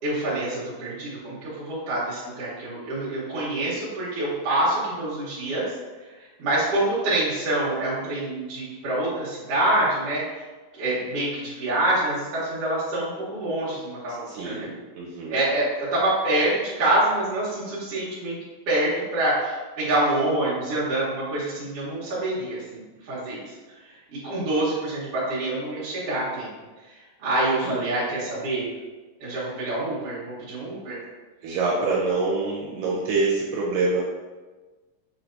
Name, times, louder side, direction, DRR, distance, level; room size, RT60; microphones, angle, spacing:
voice 1, 0.0-5.7 6.2-10.2 10.8-14.7 15.3-18.4 18.7-23.5 23.9-26.5 27.2-28.7 29.2-31.0, right 1 dB, 60° right, -10 dB, 1.8 m, -26 dB
voice 2, 14.3-15.4 27.6-27.7 31.4-34.0, right 3 dB, 80° right, -4 dB, 2.2 m, -26 dB
6.2 x 3.2 x 2.7 m, 1.3 s
omnidirectional pair, 4.0 m